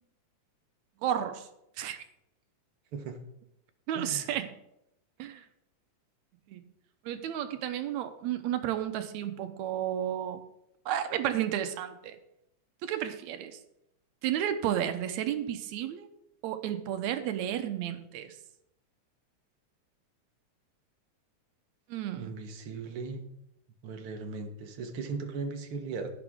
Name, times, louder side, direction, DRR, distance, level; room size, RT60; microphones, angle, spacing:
voice 1, 1.0-1.5 1.8-2.0 3.9-4.5 5.2-5.4 6.5-6.6 7.1-10.4 10.9-12.2 12.8-13.6 14.2-16.1 16.4-18.4 21.9-22.3, right 10 dB, 80° right, 9 dB, 2.0 m, -32 dB
voice 2, 3.9-4.3 22.2-23.2 23.8-26.1, right 4 dB, 60° right, 5 dB, 1.7 m, -37 dB
11.0 x 10.0 x 3.6 m, 0.83 s
omnidirectional pair, 3.4 m